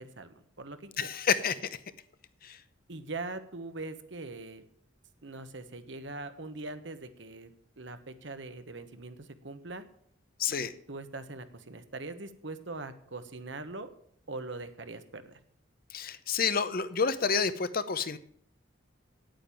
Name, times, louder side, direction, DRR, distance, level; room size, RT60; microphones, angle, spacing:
voice 1, 0.0-1.2 2.9-4.6 5.2-9.8 10.5-13.9 14.3-15.4, right 2 dB, 65° right, 10 dB, 1.2 m, -42 dB
voice 2, 1.0-1.7 2.4-2.6 10.4-10.7 15.9-18.2, left 6 dB, 50° left, 13 dB, 0.8 m, -29 dB
9.0 x 8.9 x 9.1 m, 0.65 s
head